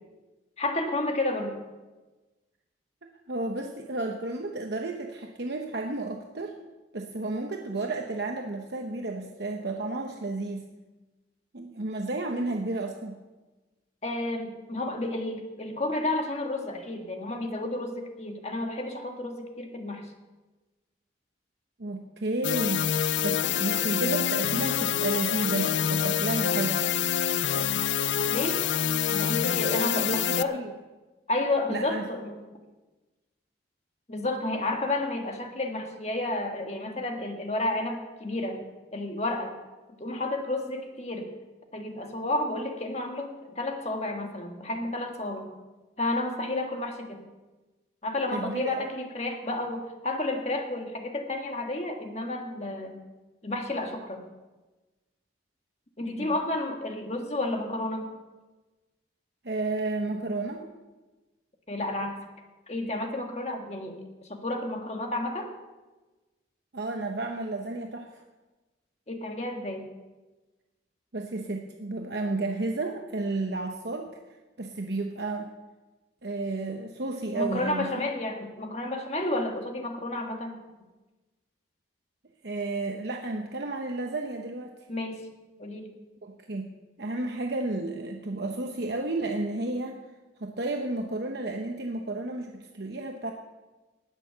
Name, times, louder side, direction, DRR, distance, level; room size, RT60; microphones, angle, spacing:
voice 1, 0.6-1.6 14.0-20.1 28.3-28.6 29.1-30.6 31.3-32.5 34.1-38.6 38.9-39.6 40.0-41.3 41.7-45.5 46.0-47.2 48.0-53.0 53.4-54.3 56.0-58.2 61.7-62.2 62.7-64.0 64.3-65.5 69.1-69.9 77.3-80.6 84.9-85.3 85.6-85.9, left 2 dB, 35° left, 3 dB, 1.6 m, -31 dB
voice 2, 3.0-6.6 6.9-10.6 11.5-13.2 21.8-22.8 23.2-26.8 29.8-30.7 31.7-32.0 48.3-48.9 56.2-56.3 59.4-60.7 66.7-68.1 71.1-74.1 74.6-75.5 76.2-77.9 82.4-84.8 86.2-86.7 87.0-90.0 90.4-93.3, right 2 dB, 60° right, 3 dB, 0.9 m, -32 dB
sound 1, 22.4-30.4, left 9 dB, 75° left, 0.4 m, -26 dB
19.0 x 6.7 x 6.8 m, 1.2 s
head